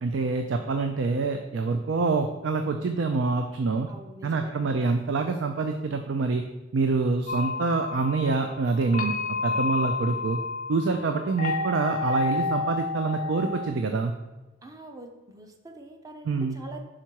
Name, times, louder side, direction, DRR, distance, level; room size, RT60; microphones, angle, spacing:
voice 1, 0.0-3.9 4.2-6.4 6.7-9.1 9.4-10.4 10.7-14.1 16.3-16.6, right 4 dB, 75° right, 6 dB, 0.4 m, -26 dB
voice 2, 3.9-4.9 14.6-16.8, right 2 dB, 20° right, 4 dB, 0.6 m, -45 dB
sound 1, 7.3-13.7, left 4 dB, 45° left, 0.4 m, -30 dB
5.7 x 3.8 x 4.5 m, 1.1 s
head